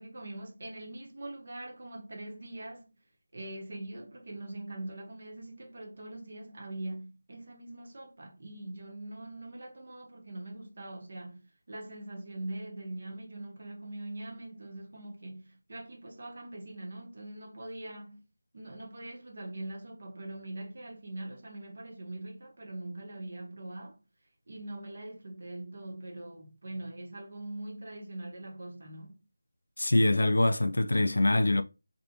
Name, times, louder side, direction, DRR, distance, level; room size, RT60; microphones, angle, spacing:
voice 1, 0.0-2.9 3.3-18.2 18.5-24.0 24.5-29.2, right 1 dB, 45° right, 1.3 m, -42 dB
voice 2, 29.8-31.6, left 2 dB, 75° left, 0.5 m, -24 dB
3.3 x 2.9 x 3.0 m
figure-of-eight pair, 170°, 0 cm